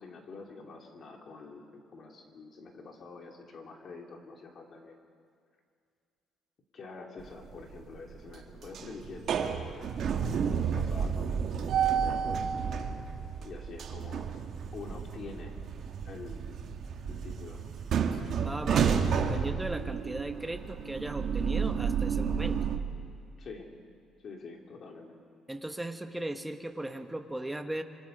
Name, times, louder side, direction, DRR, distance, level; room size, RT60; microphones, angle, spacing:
voice 1, 0.0-4.9 6.7-9.4 10.2-12.4 13.4-14.3 14.7-15.6 16.0-16.6 17.1-17.6 23.4-23.7 24.2-25.1, left 3 dB, 45° left, 1 dB, 3.2 m, -46 dB
sound 1, 7.2-7.8 8.1-22.8, right 7 dB, 55° right, 1.7 m, -31 dB
voice 2, 18.4-22.7 25.5-27.8, right 1 dB, 10° right, 6 dB, 1.3 m, -37 dB
25.5 x 25.0 x 5.5 m, 2.2 s
cardioid pair, 125°, 0 cm